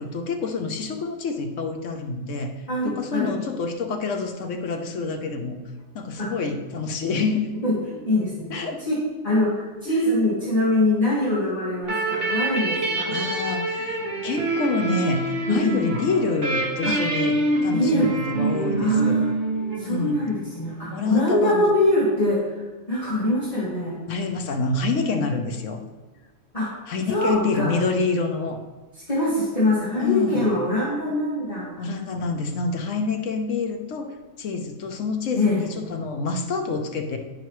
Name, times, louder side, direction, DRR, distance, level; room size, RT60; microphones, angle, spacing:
voice 1, 0.0-2.5 2.8-5.6 5.9-7.5 8.5-8.8 9.9-10.0 13.1-19.2 19.8-20.2 20.9-21.7 24.1-25.8 26.9-28.6 30.0-30.5 31.8-37.2, left 4 dB, 70° left, 5 dB, 1.1 m, -27 dB
voice 2, 2.7-3.3 6.2-6.3 7.6-8.5 8.8-13.2 15.5-15.8 16.8-17.0 17.7-18.1 18.8-19.3 19.8-24.0 26.5-26.7 27.1-27.7 29.1-31.7 35.3-35.7, left 1 dB, 25° left, -11 dB, 2.0 m, -23 dB
sound 1, 11.8-20.3, right 2 dB, 45° right, 1.3 m, -26 dB
10.5 x 5.5 x 3.1 m, 1.2 s
omnidirectional pair, 1.4 m